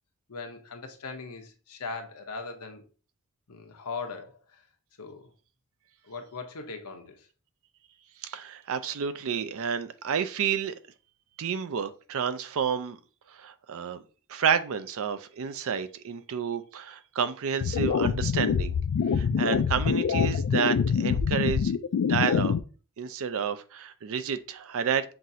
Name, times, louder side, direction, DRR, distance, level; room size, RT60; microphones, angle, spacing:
voice 1, 0.3-2.9 3.5-4.6 5.0-5.3 6.0-7.3, left 4 dB, 90° left, 0.8 m, -39 dB
voice 2, 8.2-10.8 11.4-13.0 13.4-14.0 14.3-18.8 19.1-22.6 23.0-25.1, right 7 dB, 65° right, 0.5 m, -30 dB
sound 1, 17.6-22.6, left 6 dB, 65° left, 0.3 m, -25 dB
5.9 x 2.5 x 2.7 m
head